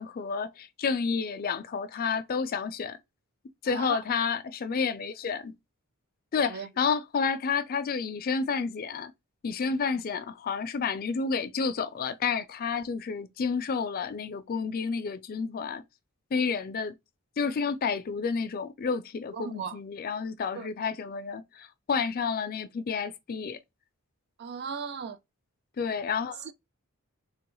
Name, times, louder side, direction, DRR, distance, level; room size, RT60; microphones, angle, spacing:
voice 1, 0.0-3.0 3.6-5.5 6.3-9.1 9.4-15.8 16.3-16.9 17.4-23.6 25.8-26.5, left 5 dB, 40° left, 0.4 m, -30 dB
voice 2, 3.7-4.0 6.4-6.7 19.3-19.8 20.5-20.7 24.4-25.2 26.4-26.5, right 6 dB, 50° right, 0.4 m, -37 dB
3.2 x 2.3 x 3.0 m
head